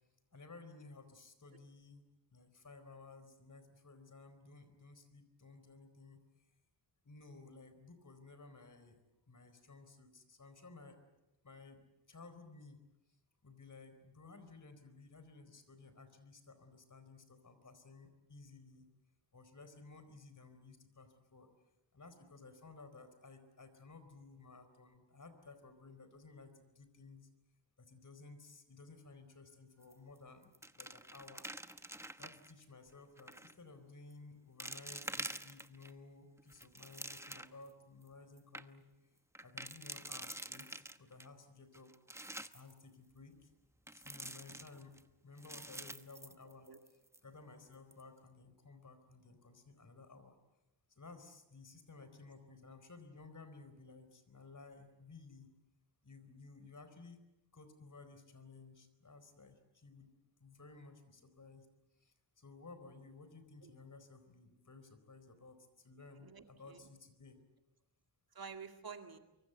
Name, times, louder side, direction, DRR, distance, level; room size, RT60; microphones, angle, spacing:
voice 1, 0.3-2.0 2.3-6.2 7.0-9.0 9.3-11.0 11.4-11.8 12.1-12.8 13.4-18.9 19.3-21.5 21.9-27.3 27.8-31.5 32.2-38.8 39.4-41.9 42.5-43.5 43.9-45.0 45.2-46.7 47.2-50.4 51.0-55.5 56.0-57.2 57.5-60.1 60.4-61.7 62.0-67.4, left 3 dB, 45° left, 10 dB, 4.3 m, -56 dB
sound 1, 29.8-30.2 30.4-32.5 33.2-33.5 34.1-34.2 34.6-35.9 36.4-37.7 38.1-38.2 38.4-38.6 39.3-41.3 41.7-42.7 43.9-45.0 45.4-46.9 47.1-47.2 47.7-48.0, right 1 dB, 5° right, 0.9 m, -47 dB
voice 2, 46.4-46.8 63.6-63.7 66.2-66.9 68.3-69.2, right 5 dB, 55° right, 5 dB, 2.2 m, -50 dB
24.5 x 24.0 x 8.2 m, 0.94 s
wide cardioid pair, 90°, 43 cm